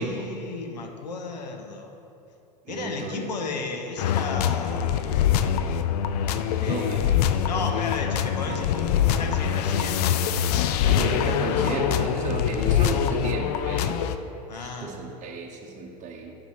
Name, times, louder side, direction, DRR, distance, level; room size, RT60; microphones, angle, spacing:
voice 1, 0.0-1.9 2.7-5.1 6.6-6.9 7.4-10.2 14.5-15.0, left 4 dB, 85° left, 4 dB, 0.9 m, -34 dB
voice 2, 2.7-3.3 6.5-7.0 8.5-8.6 10.8-14.0 14.6-16.4, right 3 dB, 35° right, 0 dB, 1.0 m, -32 dB
sound 1, 4.0-14.2, left 9 dB, 65° left, 0.5 m, -24 dB
7.1 x 5.0 x 6.1 m, 2.8 s
hypercardioid pair, 85°, 21 cm